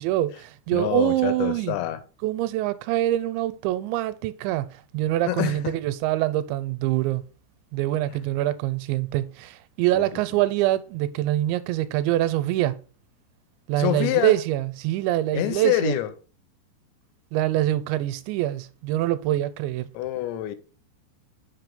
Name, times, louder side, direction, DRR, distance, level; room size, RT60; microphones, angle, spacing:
voice 1, 0.0-1.8 2.2-7.2 7.7-12.8 13.7-16.0 17.3-19.9, right 14 dB, 90° right, 2.9 m, -25 dB
voice 2, 0.7-2.0 5.3-5.8 9.9-10.2 13.8-14.4 15.3-16.1 19.9-20.6, left 14 dB, 90° left, 2.9 m, -26 dB
6.4 x 4.9 x 5.2 m
omnidirectional pair, 5.1 m